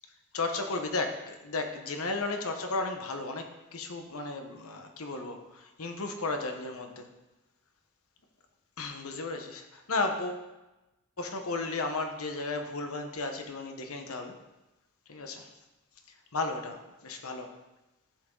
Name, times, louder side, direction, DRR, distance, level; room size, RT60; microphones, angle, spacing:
voice 1, 0.3-7.1 8.8-10.4 11.2-14.3 15.1-15.5 16.3-17.5, left 3 dB, 75° left, 5 dB, 1.1 m, -34 dB
11.5 x 7.4 x 3.8 m, 1.0 s
head